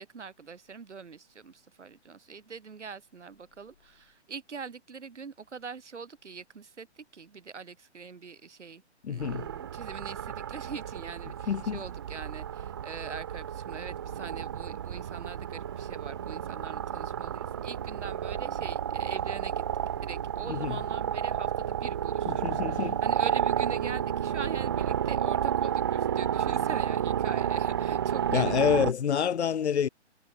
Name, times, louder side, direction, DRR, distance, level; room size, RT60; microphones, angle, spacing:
voice 1, 0.0-8.8 9.1-19.6 20.0-28.5, right 5 dB, 80° right, 3.4 m, -43 dB
voice 2, 9.0-9.5 11.5-11.8 20.5-20.8 22.3-23.0 28.3-29.9, left 8 dB, 70° left, 0.9 m, -27 dB
sound 1, 9.2-28.9, right 9 dB, 20° right, 0.5 m, -31 dB
hypercardioid pair, 150°, 35 cm